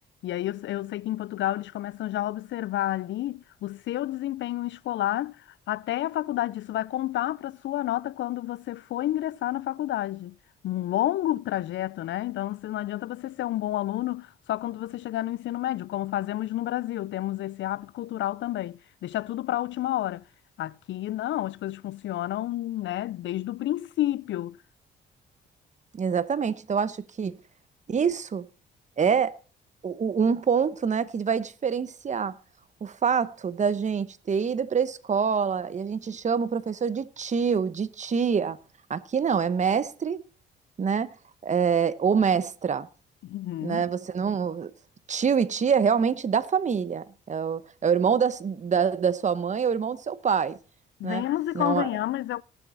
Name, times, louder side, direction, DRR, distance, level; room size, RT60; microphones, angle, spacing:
voice 1, 0.2-10.3 10.6-20.2 20.6-24.6 43.2-43.8 51.0-52.4, left 14 dB, 70° left, 0.5 m, -30 dB
voice 2, 25.9-27.4 27.9-28.5 29.0-29.3 29.8-32.3 32.8-38.6 38.9-40.2 40.8-41.1 41.4-42.9 43.6-44.7 45.1-50.6 51.0-51.2 51.5-51.9, right 6 dB, 35° right, 1.0 m, -25 dB
18.0 x 7.3 x 4.0 m
cardioid pair, 90°, 20 cm